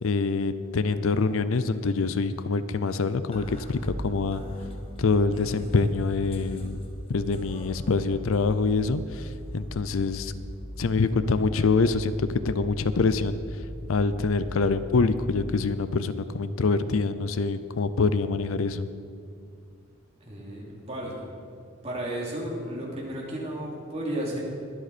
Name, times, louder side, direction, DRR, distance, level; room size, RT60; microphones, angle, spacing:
voice 1, 0.0-4.4 5.0-6.8 7.1-10.3 10.8-13.4 13.9-18.9, left 4 dB, 85° left, 13 dB, 0.6 m, -25 dB
sound 1, 3.3-15.3, equal, 30° left, 1.4 m, -39 dB
voice 2, 20.2-21.3 21.8-24.4, right 1 dB, 30° right, -4 dB, 2.9 m, -33 dB
21.5 x 7.9 x 4.2 m, 2.3 s
head